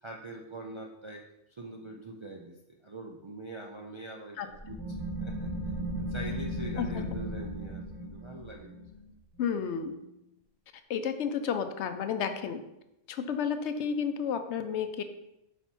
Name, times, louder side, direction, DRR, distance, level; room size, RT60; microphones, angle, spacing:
voice 1, 0.0-1.2 1.5-4.8 5.2-8.9, right 2 dB, 50° right, -1 dB, 0.3 m, -44 dB
voice 2, 4.4-4.8 6.8-7.0 9.4-9.9 10.9-12.6 13.1-15.0, left 7 dB, 75° left, 9 dB, 0.9 m, -32 dB
sound 1, 4.5-9.9, equal, 20° left, 1.0 m, -36 dB
5.7 x 4.1 x 4.4 m, 0.88 s
omnidirectional pair, 1.2 m